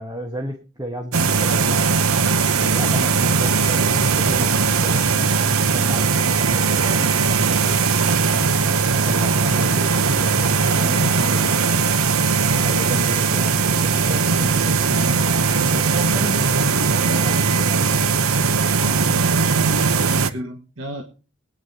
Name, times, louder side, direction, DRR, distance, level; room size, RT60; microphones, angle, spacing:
voice 1, 0.0-2.1 2.5-8.5 8.9-11.6 12.6-15.2 15.7-17.7, equal, 20° right, 3 dB, 1.3 m, -33 dB
sound 1, 1.1-20.3, right 5 dB, 90° right, 0.9 m, -19 dB
voice 2, 10.7-11.8 18.8-21.0, right 2 dB, 65° right, 4 dB, 1.6 m, -31 dB
21.5 x 9.7 x 2.8 m, 0.35 s
head